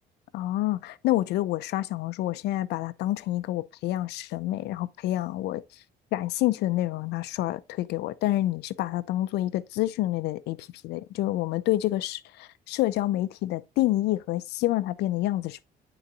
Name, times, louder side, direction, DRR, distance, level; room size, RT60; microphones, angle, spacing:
voice 1, 0.3-5.8 6.1-15.7, left 15 dB, 80° left, 0.5 m, -28 dB
9.3 x 3.9 x 2.6 m
cardioid pair, 110°, 17 cm